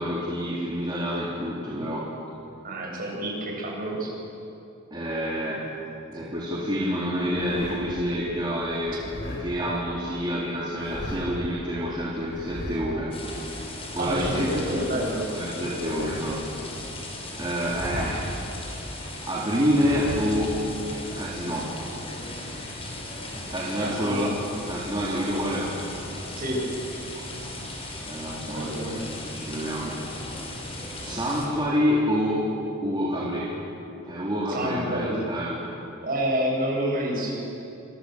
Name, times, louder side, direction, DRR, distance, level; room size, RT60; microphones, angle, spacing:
voice 1, 0.0-2.1 4.9-5.7 6.1-13.7 14.0-14.5 15.3-16.6 17.3-18.4 19.3-20.6 21.2-21.8 23.5-24.4 24.6-25.8 27.2-27.3 28.0-29.1 29.3-30.0 31.0-32.5 32.8-33.6 34.0-35.6, equal, 20° right, -6 dB, 3.7 m, -28 dB
voice 2, 2.6-4.1 14.0-15.3 23.8-24.2 26.3-26.6 28.6-28.9 34.5-35.2 36.0-37.4, right 1 dB, 45° right, -1 dB, 8.0 m, -28 dB
sound 1, 7.1-8.0 8.8-9.4 10.6-11.5 12.3-12.9 13.8-14.6 15.5-16.4 17.5-18.4 19.6-20.5, left 1 dB, 45° left, 6.8 m, -36 dB
sound 2, 13.1-31.5, left 1 dB, 25° left, 5.7 m, -37 dB
27.5 x 25.5 x 8.1 m, 2.7 s
head